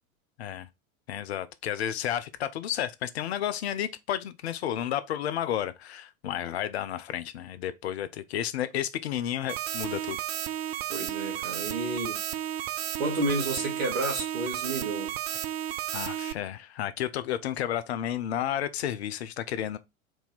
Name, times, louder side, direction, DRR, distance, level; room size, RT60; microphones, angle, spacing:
voice 1, 1.1-10.2 15.9-19.8, left 11 dB, 50° left, 0.5 m, -32 dB
sound 1, 9.5-16.3, right 12 dB, 50° right, 0.5 m, -33 dB
voice 2, 10.9-12.2 13.0-15.1, right 1 dB, 70° right, 2.1 m, -31 dB
4.6 x 2.7 x 4.0 m
figure-of-eight pair, 85°, 42 cm